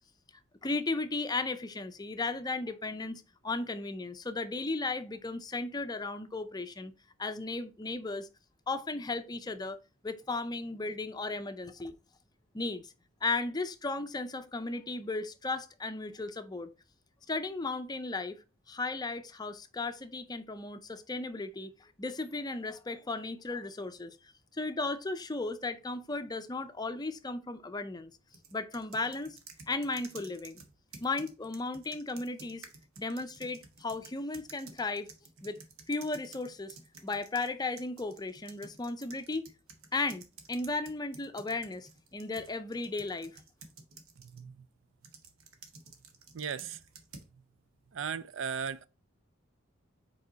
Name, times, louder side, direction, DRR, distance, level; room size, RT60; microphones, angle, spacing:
voice 1, 0.6-6.9 7.2-8.3 8.7-11.9 12.5-12.9 13.2-16.7 17.3-18.4 18.7-24.2 24.5-28.1 28.5-29.4 29.7-30.6 31.0-32.7 33.0-35.1 35.4-35.6 35.9-36.8 37.0-39.5 39.9-43.4, left 3 dB, 20° left, 0.5 m, -35 dB
sound 1, 28.3-37.5 37.8-44.4 45.0-47.3, right 4 dB, 85° right, 1.1 m, -53 dB
voice 2, 44.2-44.7 46.3-46.8 47.9-48.9, right 6 dB, 60° right, 0.4 m, -37 dB
5.2 x 4.6 x 3.9 m
head